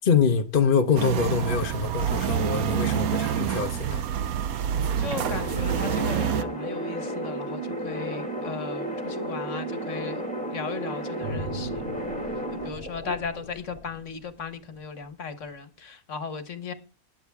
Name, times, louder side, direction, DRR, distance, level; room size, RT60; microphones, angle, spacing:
voice 1, 0.0-4.0, left 6 dB, 45° left, 1.0 m, -24 dB
sound 1, 1.0-6.4, right 9 dB, 90° right, 1.3 m, -27 dB
voice 2, 5.0-10.2 10.5-11.9 12.5-16.7, left 5 dB, 60° left, 1.5 m, -36 dB
sound 2, 5.1-12.7, right 1 dB, 5° left, 2.5 m, -32 dB
sound 3, 11.2-14.8 15.2-15.4, equal, 60° right, 6.3 m, -39 dB
20.0 x 7.4 x 3.5 m
omnidirectional pair, 1.5 m